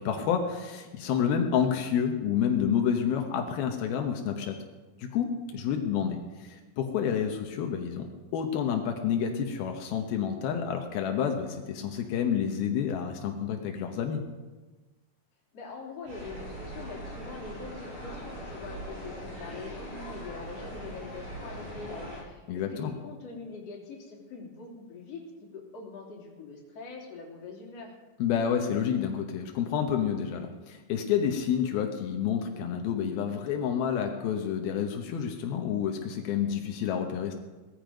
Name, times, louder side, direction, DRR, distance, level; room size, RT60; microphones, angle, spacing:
voice 1, 0.0-4.6 5.0-8.1 8.3-14.2 22.5-22.9 28.2-37.3, left 8 dB, 85° left, 3 dB, 3.0 m, -29 dB
voice 2, 15.5-25.3 25.5-27.9, left 4 dB, 45° left, -3 dB, 4.0 m, -43 dB
sound 1, 16.1-22.2, right 1 dB, 80° right, 8.6 m, -41 dB
18.5 x 14.0 x 5.2 m, 1.2 s
omnidirectional pair, 4.2 m